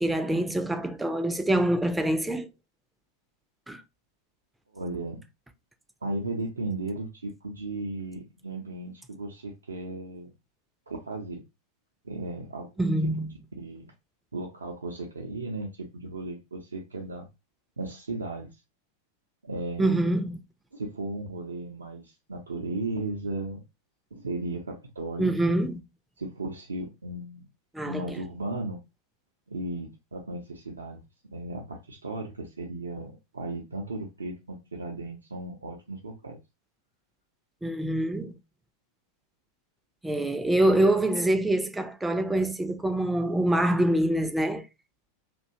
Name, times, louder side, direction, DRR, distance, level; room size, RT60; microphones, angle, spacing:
voice 1, 0.0-2.5 3.7-3.8 12.8-13.3 19.8-20.4 25.2-25.8 27.7-28.1 37.6-38.3 40.0-44.6, right 1 dB, 5° right, 0.4 m, -25 dB
voice 2, 4.7-5.2 6.0-10.3 10.9-11.4 12.0-12.7 13.6-13.9 14.3-17.3 17.8-18.6 19.4-20.0 20.7-23.6 24.1-25.3 26.2-27.4 27.8-28.8 29.5-31.0 31.3-36.4, right 2 dB, 75° right, 0.5 m, -35 dB
2.7 x 2.2 x 2.6 m
figure-of-eight pair, 90°, 0 cm